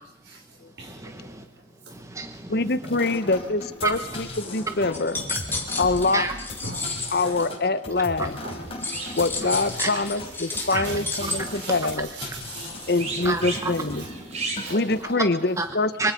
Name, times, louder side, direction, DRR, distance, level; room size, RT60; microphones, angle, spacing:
voice 1, 0.8-1.4 1.9-2.5 3.8-3.9 6.1-6.3 9.8-9.9 10.7-10.9 13.2-13.7 15.6-15.7 16.0-16.1, right 3 dB, 15° right, 7 dB, 1.1 m, -28 dB
voice 2, 2.5-5.2 5.8-6.3 7.1-8.4 9.2-12.1 12.9-14.1 14.7-16.1, left 3 dB, 55° left, 13 dB, 1.0 m, -25 dB
sound 1, 2.8-15.0, left 1 dB, 30° left, 4.4 m, -38 dB
sound 2, 4.9-7.2 8.8-11.4, left 3 dB, 10° left, 3.1 m, -31 dB
voice 3, 5.2-6.0 6.6-7.6 8.0-8.1 8.4-8.5 8.9-9.2 10.5-11.8 12.2-12.9 14.6-14.8, right 2 dB, 65° right, 2 dB, 5.3 m, -39 dB
sound 3, 8.3-15.1, right 3 dB, 35° right, 3.3 m, -39 dB
25.0 x 24.0 x 5.2 m, 0.88 s
head